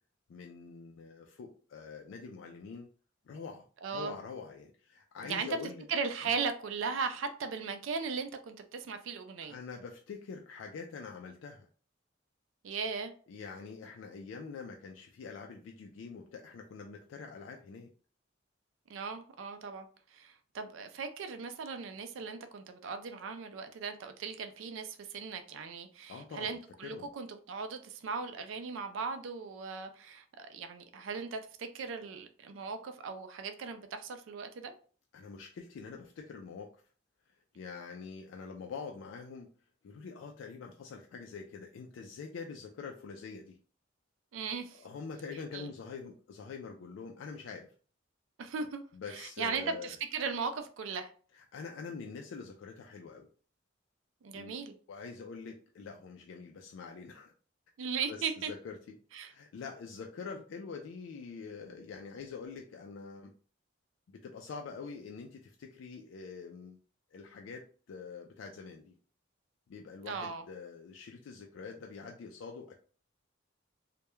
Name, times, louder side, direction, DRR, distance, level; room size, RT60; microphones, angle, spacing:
voice 1, 0.3-2.9 3.3-3.7 3.9-5.8 9.5-11.7 13.3-17.9 26.1-26.6 26.8-27.1 35.1-36.8 37.5-39.5 39.8-43.6 44.7-47.7 48.9-49.9 51.3-53.3 54.3-54.6 54.9-57.3 58.1-58.8 59.3-63.3 64.1-66.8 67.1-68.9 69.7-72.8, left 5 dB, 75° left, 0.3 m, -45 dB
voice 2, 3.8-4.1 5.2-5.5 5.9-9.5 12.6-13.1 18.9-34.7 44.3-44.9 45.5-45.7 48.4-51.1 54.2-54.8 57.8-58.5 59.1-59.3 70.1-70.4, right 5 dB, 85° right, 0.4 m, -38 dB
2.2 x 2.1 x 2.9 m
head